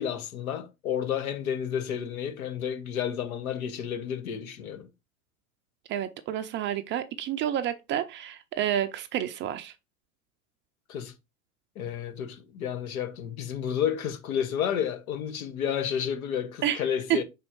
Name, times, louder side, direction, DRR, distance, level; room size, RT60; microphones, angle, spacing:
voice 1, 0.0-4.9 10.9-11.1 11.7-17.2, left 8 dB, 70° left, 1.3 m, -31 dB
voice 2, 5.9-9.7 16.6-17.2, right 11 dB, 25° right, 0.4 m, -29 dB
5.4 x 4.2 x 4.4 m
hypercardioid pair, 95°, 44 cm